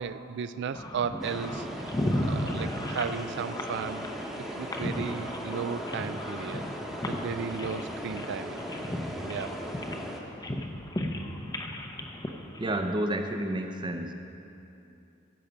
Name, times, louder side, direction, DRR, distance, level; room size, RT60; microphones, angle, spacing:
voice 1, 0.0-1.9 2.2-4.1 4.6-6.6 7.1-8.6 9.2-9.5, right 6 dB, 55° right, 12 dB, 0.4 m, -35 dB
sound 1, 0.7-13.1, left 1 dB, 20° left, 0.7 m, -35 dB
sound 2, 1.2-10.2, equal, ahead, 1.0 m, -38 dB
voice 2, 12.6-14.1, right 1 dB, 20° right, 6 dB, 0.7 m, -30 dB
16.0 x 7.3 x 5.3 m, 2.8 s
head